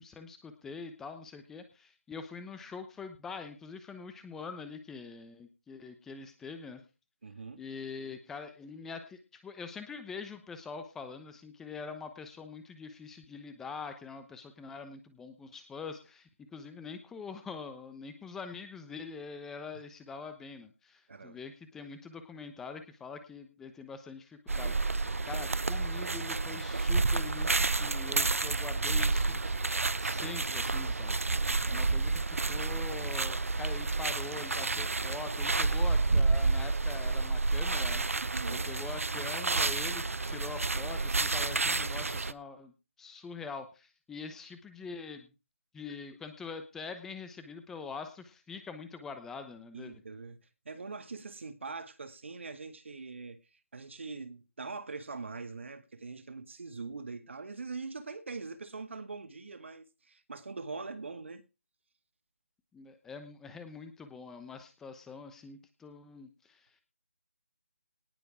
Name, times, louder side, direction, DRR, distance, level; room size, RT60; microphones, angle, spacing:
voice 1, 0.0-6.8 7.6-24.7 25.3-29.6 30.0-38.0 38.5-45.3 45.7-49.9 62.7-66.8, left 5 dB, 5° left, 0.9 m, -44 dB
voice 2, 7.2-7.6 21.1-21.4 31.3-32.0 37.6-37.8 38.2-38.7 49.7-53.4 53.7-61.4, right 4 dB, 60° right, 1.9 m, -43 dB
sound 1, 24.5-42.3, right 3 dB, 80° right, 0.7 m, -30 dB
18.5 x 6.9 x 4.9 m
figure-of-eight pair, 160°, 7 cm